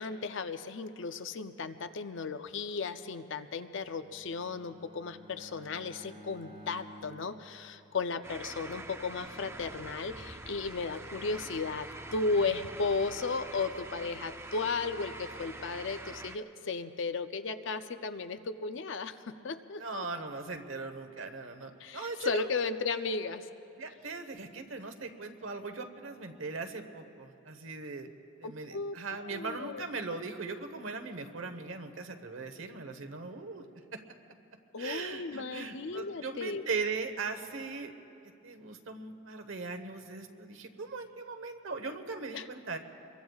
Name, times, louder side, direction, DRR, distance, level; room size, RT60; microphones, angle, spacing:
voice 1, 0.0-20.0 21.8-23.5 28.7-29.8 34.7-36.6 42.3-42.5, left 4 dB, 60° left, 10 dB, 0.6 m, -35 dB
Bowed string instrument, 3.7-8.4, equal, 30° right, 1.2 m, -53 dB
sound 1, 8.2-16.4, right 2 dB, 10° right, 0.5 m, -45 dB
voice 2, 19.8-22.5 23.8-28.1 28.4-33.6 33.9-34.0 34.8-37.9 38.4-42.8, right 4 dB, 70° right, 7 dB, 1.1 m, -39 dB
26.5 x 22.5 x 2.4 m, 2.6 s
head